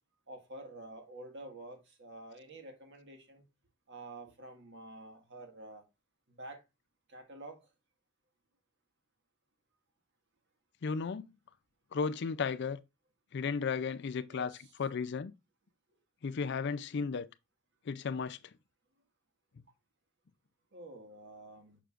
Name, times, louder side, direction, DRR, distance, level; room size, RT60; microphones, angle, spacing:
voice 1, 0.3-3.4 3.9-5.8 6.3-6.6 7.1-7.7 14.3-14.7 20.7-21.8, right 2 dB, 55° right, 1.8 m, -49 dB
voice 2, 10.8-11.3 11.9-12.8 13.3-14.5 14.8-15.3 16.2-17.3 17.9-18.4, left 5 dB, 50° left, 0.4 m, -34 dB
6.9 x 6.0 x 2.4 m
head